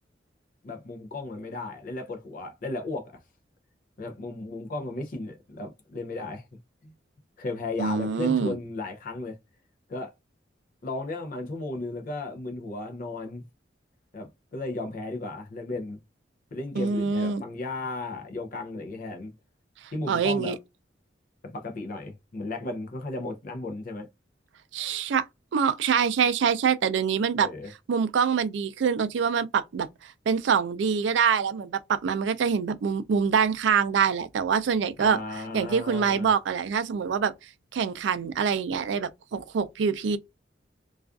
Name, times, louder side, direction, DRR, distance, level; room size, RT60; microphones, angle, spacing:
voice 1, 0.6-3.2 4.0-6.5 6.8-6.9 7.4-9.4 9.9-10.1 10.8-13.4 14.1-16.0 16.5-19.3 19.9-20.6 21.4-24.1 27.4-27.7 35.0-36.3, left 2 dB, 50° left, 0.5 m, -35 dB
voice 2, 7.8-8.6 16.8-17.4 20.1-20.6 24.7-25.3 25.5-27.5 27.9-35.2 35.5-37.3 37.7-40.2, right 6 dB, 75° right, 0.4 m, -25 dB
2.4 x 2.3 x 2.2 m
head